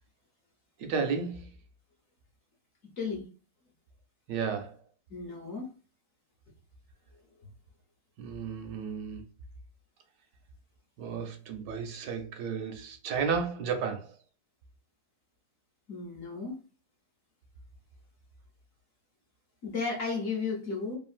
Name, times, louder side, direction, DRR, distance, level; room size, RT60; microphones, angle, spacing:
voice 1, 0.8-1.5 4.3-4.8 8.2-9.2 11.0-14.1, right 6 dB, 75° right, 1.2 m, -33 dB
voice 2, 3.0-3.3 5.1-5.7 15.9-16.6 19.6-21.0, left 4 dB, 60° left, 0.9 m, -34 dB
3.1 x 2.4 x 2.5 m
omnidirectional pair, 2.0 m